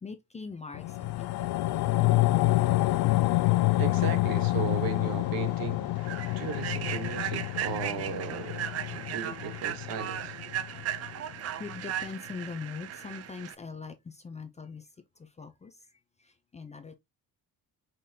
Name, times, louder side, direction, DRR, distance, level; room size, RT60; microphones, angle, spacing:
voice 1, 0.0-1.5 6.3-6.4 9.5-9.6 10.7-10.9 11.3-14.9 15.2-15.9 16.2-16.9, left 5 dB, 20° left, 0.4 m, -42 dB
sound 1, 0.7-11.3 11.7-11.8, left 18 dB, 75° left, 0.5 m, -28 dB
voice 2, 3.8-5.9 6.4-10.3, right 8 dB, 60° right, 1.1 m, -36 dB
Human voice / Train, 4.7-4.8 5.3-5.4 6.0-13.5, right 11 dB, 40° right, 0.4 m, -37 dB
5.1 x 3.8 x 2.7 m
cardioid pair, 175°, 38 cm